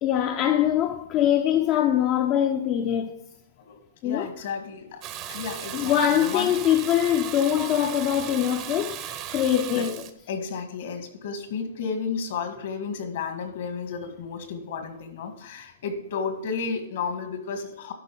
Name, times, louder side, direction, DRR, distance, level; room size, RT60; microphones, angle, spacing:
voice 1, 0.0-3.2 4.0-4.3 5.7-10.0, left 10 dB, 35° left, 0.6 m, -23 dB
voice 2, 3.6-6.5 7.6-8.3 9.7-9.9 10.3-17.9, left 5 dB, 65° left, 1.8 m, -33 dB
Water tap faucet / Bathtub (filling or washing), 5.0-10.1, right 10 dB, 35° right, 0.8 m, -36 dB
11.0 x 4.1 x 6.9 m
hypercardioid pair, 140°, 0 cm